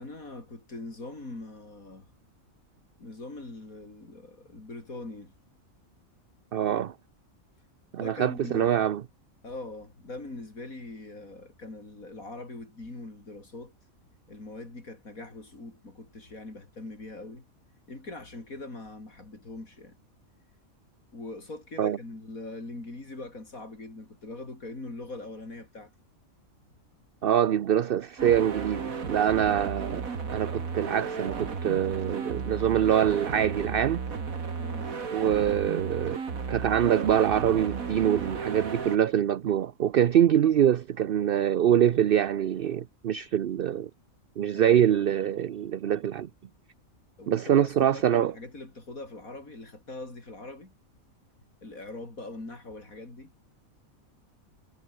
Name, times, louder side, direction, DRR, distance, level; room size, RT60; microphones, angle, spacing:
voice 1, 0.0-2.1 3.0-5.3 8.0-8.8 9.4-13.7 14.3-17.4 17.9-20.0 21.1-25.9 29.4-29.8 34.6-34.9 44.5-45.0 47.2-50.7 51.6-53.3, left 2 dB, 85° left, 5.8 m, -42 dB
voice 2, 6.5-6.9 7.9-9.0 21.8-22.0 27.2-34.0 35.1-36.2 36.5-43.9 44.4-46.3 47.3-48.3, right 10 dB, 55° right, 0.7 m, -24 dB
sound 1, 28.2-39.0, right 5 dB, 80° right, 2.6 m, -34 dB
omnidirectional pair, 1.4 m